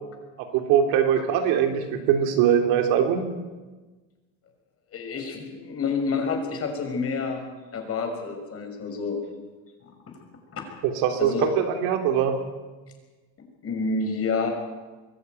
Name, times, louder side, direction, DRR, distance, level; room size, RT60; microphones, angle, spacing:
voice 1, 0.4-3.2 10.8-12.3, right 9 dB, 80° right, 5 dB, 3.5 m, -22 dB
voice 2, 4.9-7.4 7.7-9.2 9.8-9.9 10.5-10.6 11.2-11.5 13.6-14.5, left 4 dB, 40° left, 3 dB, 6.1 m, -28 dB
23.0 x 14.5 x 9.3 m, 1.2 s
cardioid pair, 125°, 36 cm